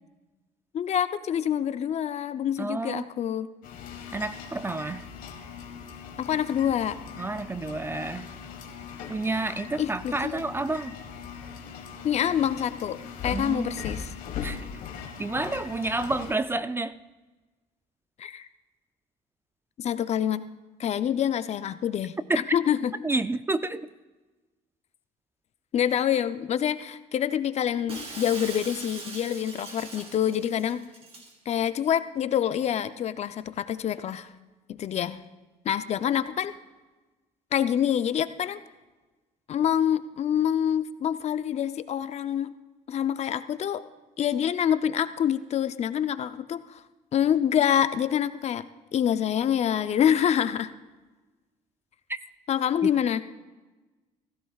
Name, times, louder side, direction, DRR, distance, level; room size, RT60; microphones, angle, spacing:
voice 1, 0.7-3.5 6.2-7.0 9.8-10.4 12.0-14.1 18.2-18.5 19.8-20.5 20.8-22.9 25.7-30.8 31.5-34.3 34.7-35.2 35.6-36.5 37.5-38.6 39.5-42.5 42.9-43.8 44.2-46.8 47.1-48.6 48.9-50.7 52.5-53.2, left 9 dB, 45° left, 0.6 m, -26 dB
voice 2, 2.6-3.1 4.1-5.1 7.2-8.3 9.1-11.0 13.3-14.0 14.4-14.7 15.2-17.0 22.3-22.4 23.0-23.9 52.1-52.2, right 2 dB, 15° right, 0.3 m, -30 dB
sound 1, 3.6-16.3, left 7 dB, 65° left, 1.4 m, -40 dB
Shatter, 27.9-31.3, right 2 dB, 40° right, 2.9 m, -41 dB
16.0 x 15.0 x 2.4 m
supercardioid pair, 90°, 15 cm